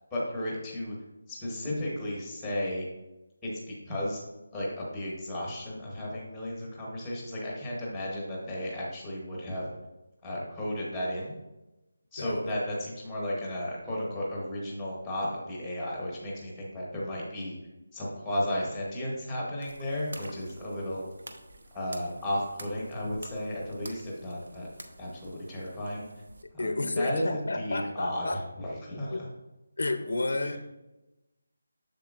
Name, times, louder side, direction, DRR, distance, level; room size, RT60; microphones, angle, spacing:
voice 1, 0.1-0.9 1.3-2.9 3.4-3.5 3.9-4.2 4.5-9.7 10.2-11.4 12.1-17.6 17.9-21.1 21.7-24.7 25.0-26.1 26.5-26.7 26.9-28.2 28.6-29.2, left 1 dB, ahead, -4 dB, 0.9 m, -34 dB
voice 2, 12.2-12.6 26.6-28.4 29.1-29.2 29.8-30.6, left 2 dB, 60° left, 7 dB, 0.6 m, -31 dB
sound 1, 19.6-26.4, right 2 dB, 60° right, 0.7 m, -49 dB
7.4 x 6.9 x 2.4 m, 1.0 s
figure-of-eight pair, 180°, 0 cm